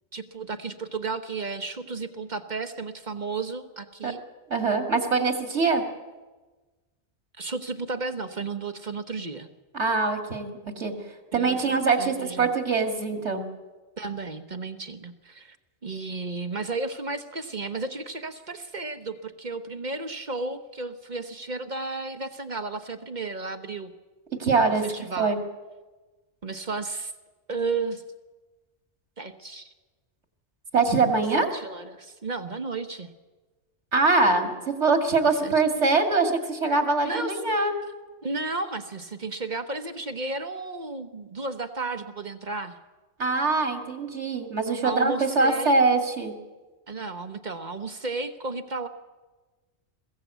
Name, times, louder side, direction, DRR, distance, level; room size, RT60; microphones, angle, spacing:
voice 1, 0.1-4.2 7.4-9.5 11.3-12.5 14.0-15.6 15.8-23.9 24.5-25.4 26.4-27.1 27.5-28.0 29.2-29.7 31.3-33.1 35.3-35.5 37.0-37.4 37.8-37.9 38.2-42.8 44.8-45.8 46.9-48.9, right 3 dB, 40° right, 9 dB, 1.1 m, -33 dB
voice 2, 4.5-5.8 9.7-10.9 11.3-13.4 24.3-24.8 25.2-25.4 30.7-31.5 33.9-37.7 43.2-46.3, right 3 dB, 80° right, 5 dB, 2.3 m, -23 dB
22.0 x 15.5 x 8.1 m, 1.2 s
omnidirectional pair, 1.2 m